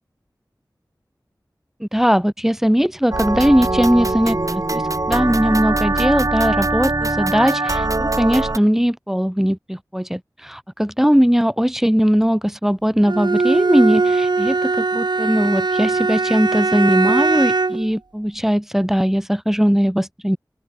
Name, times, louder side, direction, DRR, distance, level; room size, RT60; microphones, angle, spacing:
voice 1, 1.8-20.4, equal, 5° right, 3.3 m, -19 dB
sound 1, 3.1-8.6, right 2 dB, 50° right, 6.8 m, -22 dB
Bowed string instrument, 13.0-17.9, right 3 dB, 85° right, 4.2 m, -20 dB
open air
wide cardioid pair, 45°, 7 cm